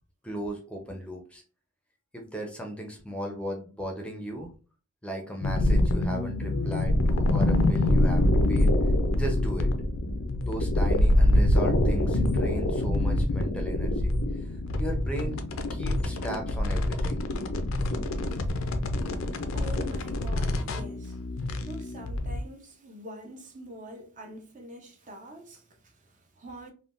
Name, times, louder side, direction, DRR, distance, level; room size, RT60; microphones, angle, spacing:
voice 1, 0.2-1.4 2.1-4.5 5.0-8.7 9.1-9.7 10.4-14.1 14.8-15.4 15.7-17.2, right 1 dB, 5° left, 0.6 m, -36 dB
sound 1, 5.4-22.4, left 1 dB, 70° left, 0.4 m, -25 dB
voice 2, 19.5-21.2 21.6-26.7, equal, 40° right, 0.6 m, -45 dB
3.5 x 2.2 x 2.4 m
head